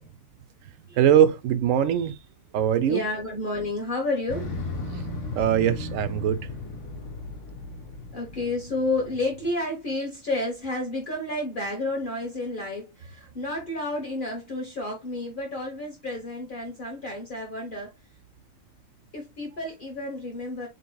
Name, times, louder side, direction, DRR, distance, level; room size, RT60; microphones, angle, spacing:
voice 1, 1.0-2.2 2.5-3.0 5.4-6.4, right 10 dB, 90° right, 1.0 m, -21 dB
voice 2, 2.8-4.5 8.1-17.9 19.1-20.7, left 2 dB, 45° left, 1.3 m, -31 dB
Motorcycle, 4.3-9.5, left 2 dB, 70° left, 1.6 m, -36 dB
7.8 x 2.9 x 2.2 m
omnidirectional pair, 1.3 m